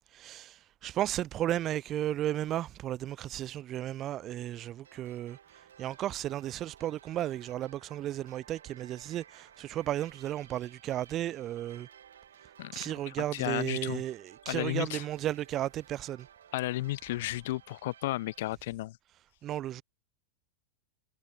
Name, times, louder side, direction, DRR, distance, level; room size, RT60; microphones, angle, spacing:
voice 1, 0.1-5.4 5.8-11.9 12.7-16.3 19.4-19.8, right 12 dB, 30° right, 0.7 m, -34 dB
sound 1, 4.8-18.6, right 9 dB, 65° right, 4.0 m, -57 dB
voice 2, 12.6-14.0 14.5-15.0 16.5-19.0, left 17 dB, 55° left, 2.0 m, -34 dB
figure-of-eight pair, 90°, 0 cm